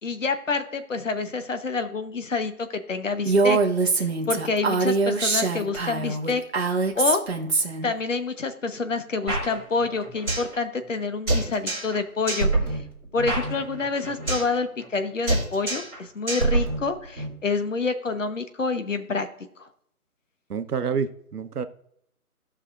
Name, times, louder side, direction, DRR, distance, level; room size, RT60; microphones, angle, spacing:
voice 1, 0.0-3.6 4.0-6.7 6.9-7.2 7.8-12.8 13.1-19.3, left 4 dB, 55° left, 9 dB, 1.0 m, -27 dB
Female speech woman speaking, 3.2-7.9, right 3 dB, 45° right, 1.3 m, -23 dB
sound 1, 9.3-10.5 10.8-10.9 11.3-12.0 12.3-14.5 14.8-15.0 15.3-16.0 16.3-17.3, right 2 dB, 5° left, 1.9 m, -26 dB
voice 2, 20.5-21.6, right 6 dB, 85° right, 10 dB, 1.0 m, -28 dB
17.0 x 5.7 x 2.4 m, 0.71 s
hypercardioid pair, 180°, 45 cm